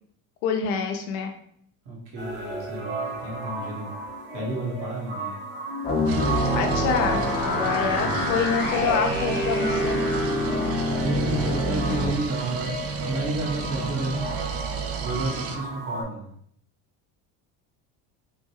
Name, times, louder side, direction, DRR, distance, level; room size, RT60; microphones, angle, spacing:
voice 1, 0.4-1.3 6.5-7.2 7.5-10.0, left 6 dB, 70° left, 4 dB, 0.8 m, -26 dB
voice 2, 1.8-3.9 4.3-5.4 7.9-8.3 11.0-14.2 15.0-16.3, right 2 dB, 70° right, -3 dB, 1.5 m, -31 dB
sound 1, 2.2-16.0, right 1 dB, 85° right, 1.4 m, -34 dB
sound 2, 5.8-12.1, left 1 dB, 20° left, 0.7 m, -26 dB
sound 3, 6.1-15.6, right 6 dB, 35° right, 0.4 m, -33 dB
3.7 x 2.2 x 2.9 m, 0.65 s
supercardioid pair, 85°, 45 cm